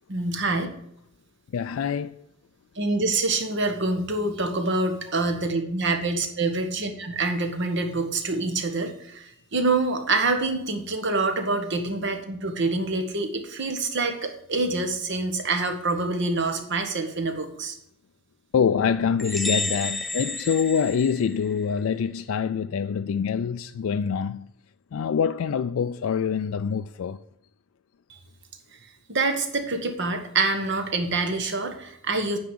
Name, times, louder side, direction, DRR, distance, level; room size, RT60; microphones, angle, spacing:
voice 1, 0.1-0.7 2.8-17.8 29.1-32.4, right 3 dB, 60° right, 1.4 m, -26 dB
voice 2, 1.5-2.1 18.5-24.5 24.9-27.2, left 7 dB, 80° left, 0.4 m, -25 dB
sound 1, 19.2-21.8, left 2 dB, ahead, 0.5 m, -31 dB
9.2 x 4.9 x 7.7 m
head